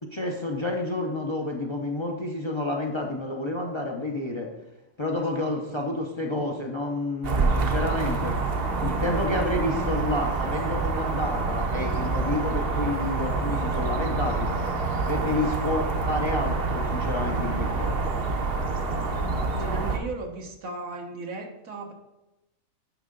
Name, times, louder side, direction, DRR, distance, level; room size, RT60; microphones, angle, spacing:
voice 1, 0.0-4.5 5.0-8.4 8.8-14.5 15.1-18.2 19.5-19.8, left 2 dB, 30° left, 1 dB, 0.6 m, -30 dB
voice 2, 5.1-5.8 18.9-21.9, right 2 dB, 90° right, 2 dB, 1.6 m, -38 dB
sound 1, 7.2-20.0, right 3 dB, 50° right, 0.9 m, -27 dB
10.0 x 5.4 x 3.8 m, 0.99 s
omnidirectional pair, 1.4 m